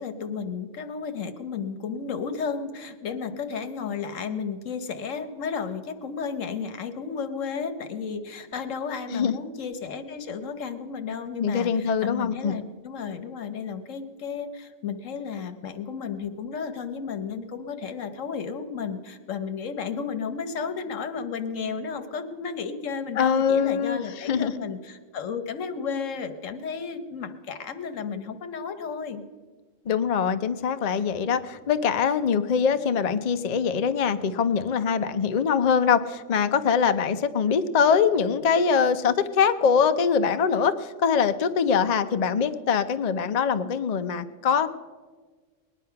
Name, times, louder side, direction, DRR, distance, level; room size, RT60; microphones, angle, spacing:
voice 1, 0.0-29.2, left 6 dB, 80° left, 10 dB, 1.3 m, -33 dB
voice 2, 11.4-12.6 23.2-24.5 29.9-44.7, left 6 dB, 45° left, 10 dB, 0.5 m, -23 dB
19.5 x 10.0 x 5.7 m, 1.4 s
omnidirectional pair, 1.3 m